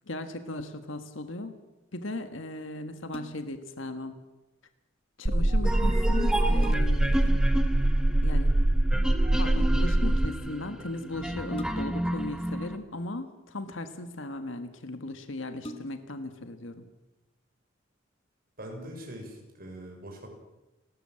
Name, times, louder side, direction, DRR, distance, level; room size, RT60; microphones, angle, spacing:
voice 1, 0.1-1.6 1.9-4.2 5.2-7.3 8.2-8.6 9.4-16.8, left 2 dB, 70° left, 8 dB, 1.7 m, -37 dB
sound 1, 3.1-3.7 5.7-5.8 6.2-7.2 8.7-9.1 11.5-12.2 13.1-13.8 14.6-14.7 15.0-15.1 15.6-16.2 16.7-16.8, equal, 30° left, 1.6 m, -45 dB
sound 2, 5.3-10.3, right 1 dB, 30° right, 0.8 m, -23 dB
sound 3, 5.6-12.8, equal, 5° right, 1.5 m, -32 dB
voice 2, 18.6-20.3, right 1 dB, 50° right, 1 dB, 6.8 m, -42 dB
30.0 x 13.5 x 7.8 m, 1.0 s
head